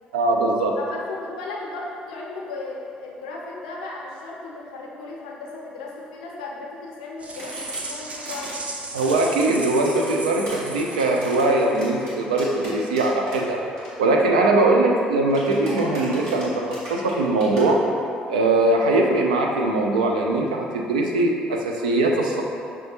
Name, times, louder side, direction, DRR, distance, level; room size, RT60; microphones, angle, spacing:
voice 1, 0.1-0.8 8.9-13.6 14.0-17.8 18.3-22.4, right 2 dB, 90° right, 1 dB, 0.4 m, -21 dB
voice 2, 0.8-8.5, left 3 dB, 85° left, -3 dB, 0.5 m, -36 dB
sound 1, 7.2-12.0, right 2 dB, 35° right, 0.5 m, -36 dB
sound 2, 7.4-8.5 9.0-13.4 13.6-13.9 15.3-17.6, equal, 75° right, 1.3 m, -39 dB
5.9 x 2.3 x 2.9 m, 2.5 s
hypercardioid pair, 55°, 4 cm